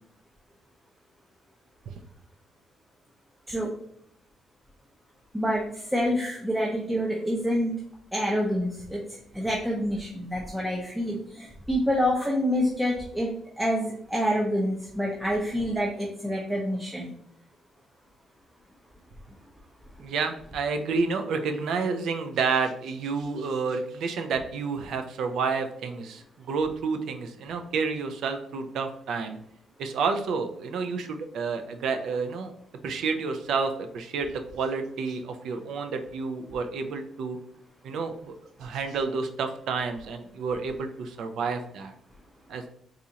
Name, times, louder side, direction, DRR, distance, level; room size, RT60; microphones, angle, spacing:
voice 1, 5.3-7.7 8.1-9.0 9.3-13.3 13.6-17.1, equal, 10° right, -2 dB, 0.6 m, -27 dB
voice 2, 20.0-29.4 29.8-32.5 32.8-37.4 37.8-38.3 38.6-41.9 42.5-42.6, right 4 dB, 75° right, 7 dB, 0.4 m, -30 dB
4.0 x 2.5 x 2.8 m, 0.68 s
cardioid pair, 90°, 0 cm